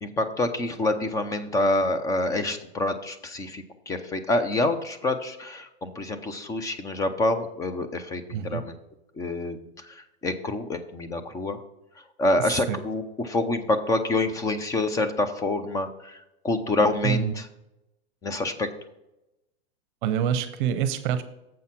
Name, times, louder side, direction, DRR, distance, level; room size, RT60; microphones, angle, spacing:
voice 1, 0.0-8.7 9.2-9.6 10.2-11.6 12.2-16.2 16.4-17.4 18.2-18.7, left 2 dB, 10° left, 10 dB, 0.4 m, -27 dB
voice 2, 12.4-12.8 17.0-17.3 20.0-21.2, right 9 dB, 50° right, 12 dB, 0.7 m, -26 dB
7.6 x 5.5 x 5.8 m, 0.90 s
hypercardioid pair, 135°, 33 cm